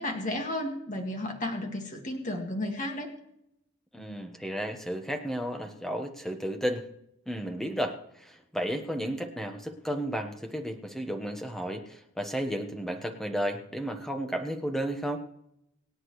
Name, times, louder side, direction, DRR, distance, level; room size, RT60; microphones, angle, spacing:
voice 1, 0.0-3.1, left 1 dB, 35° left, 2 dB, 2.0 m, -33 dB
voice 2, 3.9-6.8 7.3-15.2, equal, ahead, 5 dB, 1.2 m, -33 dB
26.0 x 8.8 x 3.2 m, 0.79 s
head